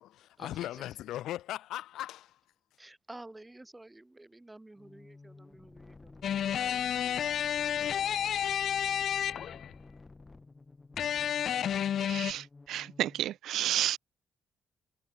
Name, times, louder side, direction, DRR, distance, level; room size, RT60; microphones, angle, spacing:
voice 1, 0.0-2.4, left 13 dB, 85° left, 2.5 m, -38 dB
voice 2, 2.8-7.2 7.5-7.8, right 2 dB, 15° right, 1.1 m, -51 dB
sound 1, 4.8-13.4, left 3 dB, 25° left, 2.2 m, -53 dB
sound 2, 6.2-9.7 11.0-12.3, left 9 dB, 65° left, 0.3 m, -31 dB
voice 3, 12.0-14.0, right 12 dB, 80° right, 1.2 m, -31 dB
cardioid pair, 90°, 0 cm